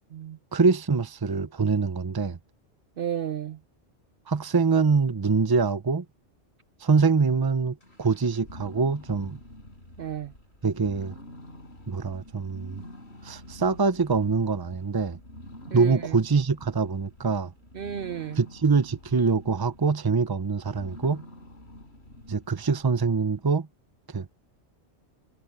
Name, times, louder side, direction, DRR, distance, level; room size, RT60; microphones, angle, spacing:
voice 1, 0.5-2.4 4.3-6.0 6.8-9.4 10.6-11.1 11.9-12.8 13.2-15.2 15.7-17.5 18.4-21.2 22.3-23.7 24.1-24.3, right 4 dB, 25° right, 0.7 m, -24 dB
voice 2, 3.0-3.6 10.0-10.3 15.7-16.2 17.7-18.4, right 10 dB, 60° right, 0.8 m, -33 dB
sound 1, 7.8-23.2, left 1 dB, 65° left, 8.0 m, -47 dB
omnidirectional pair, 1.2 m